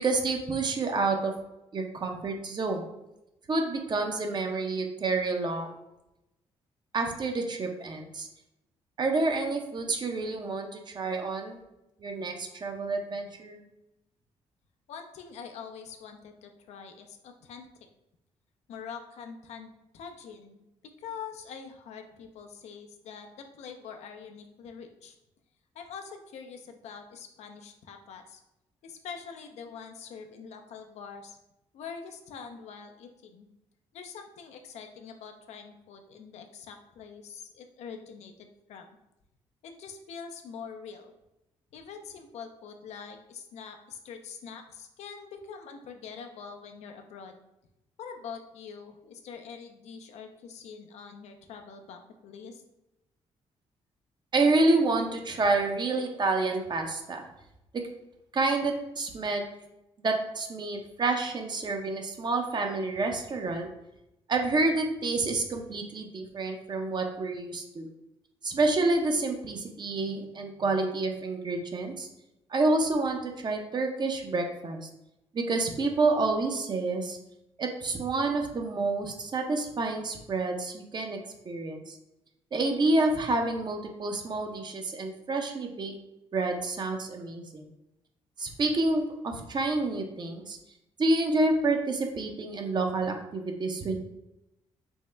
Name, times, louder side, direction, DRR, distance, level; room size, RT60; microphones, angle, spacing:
voice 1, 0.0-1.3 1.7-2.8 3.5-5.8 6.9-8.3 9.0-11.6 12.0-13.7 54.3-57.3 58.3-59.5 60.0-63.7 64.3-67.9 68.4-72.1 72.5-74.9 75.3-77.2 77.6-81.2 81.4-82.0 82.5-85.9 86.3-87.7 88.4-90.6 91.0-94.0, right 3 dB, 40° right, 3 dB, 0.6 m, -28 dB
voice 2, 14.9-17.7 18.7-20.6 21.0-25.2 25.7-28.4 28.8-31.4 31.7-33.5 33.9-38.9 39.6-41.1 41.7-47.3 48.0-52.6, left 6 dB, 75° left, 5 dB, 0.4 m, -44 dB
3.5 x 2.1 x 3.2 m, 0.90 s
cardioid pair, 75°, 11 cm